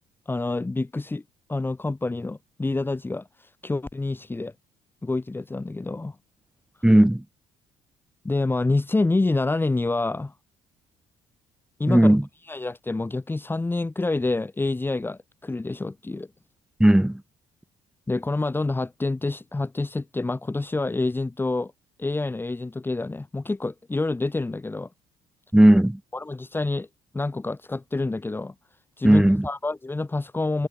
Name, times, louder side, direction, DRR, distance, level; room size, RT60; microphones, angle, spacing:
voice 1, 0.3-1.2 1.5-3.3 3.6-4.5 5.0-6.2 8.2-10.3 11.8-12.1 12.5-16.3 18.1-21.7 22.0-24.9 26.1-26.9 27.1-28.5 29.0-30.7, left 2 dB, 15° left, 2.3 m, -27 dB
voice 2, 6.8-7.2 11.9-12.2 16.8-17.2 25.5-26.0 29.0-29.5, right 1 dB, 5° right, 2.8 m, -16 dB
cardioid pair, 90°, 13 cm